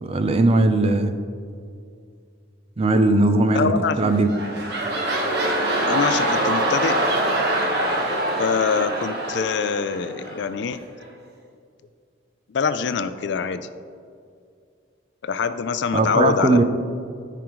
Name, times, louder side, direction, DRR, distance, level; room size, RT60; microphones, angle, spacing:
voice 1, 0.0-1.2 2.8-4.3 15.9-16.6, right 2 dB, 30° right, 8 dB, 0.5 m, -19 dB
voice 2, 3.5-4.1 5.9-7.0 8.4-10.8 12.5-13.7 15.2-16.6, left 5 dB, 60° left, 12 dB, 0.4 m, -24 dB
sound 1, 4.0-10.5 11.0-11.1, right 1 dB, 60° right, 1.3 m, -24 dB
14.0 x 5.0 x 3.0 m, 2.3 s
head